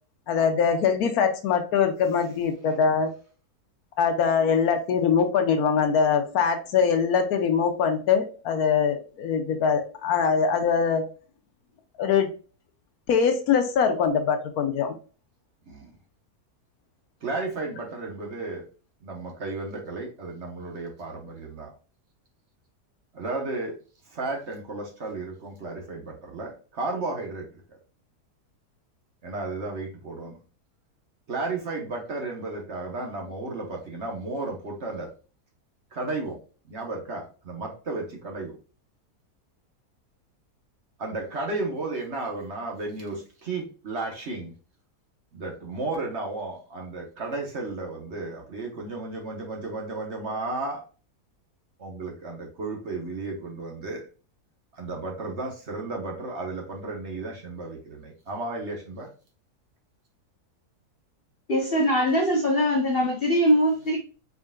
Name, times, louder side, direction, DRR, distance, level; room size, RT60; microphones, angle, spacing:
voice 1, 0.3-3.1 4.0-11.0 12.0-12.3 13.1-14.9, left 6 dB, 75° left, 1.1 m, -23 dB
voice 2, 17.2-18.6 19.0-21.7 23.1-23.7 24.1-27.8 29.2-30.4 31.3-35.1 35.9-36.4 36.7-38.6 41.0-44.5 45.3-50.8 51.8-54.0 54.7-59.1, right 3 dB, 50° right, 1.1 m, -33 dB
voice 3, 61.5-64.0, equal, 50° left, 0.8 m, -22 dB
4.4 x 3.7 x 2.2 m
omnidirectional pair, 1.7 m